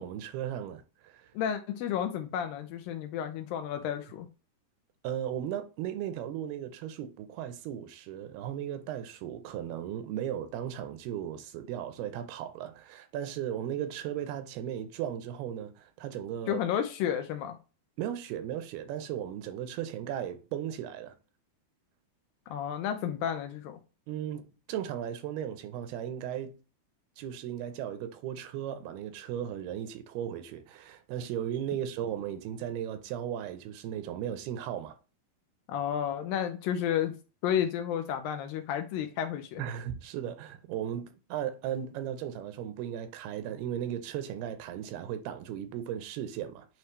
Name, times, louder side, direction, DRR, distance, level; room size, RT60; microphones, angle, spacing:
voice 1, 0.0-1.3 5.0-16.6 18.0-21.2 24.1-26.5 27.2-35.0 39.6-46.7, right 10 dB, 85° right, 2.8 m, -36 dB
voice 2, 1.3-4.3 16.5-17.6 22.5-23.8 35.7-37.1 37.4-39.6, left 9 dB, 80° left, 2.2 m, -31 dB
9.4 x 3.2 x 3.2 m
omnidirectional pair, 4.5 m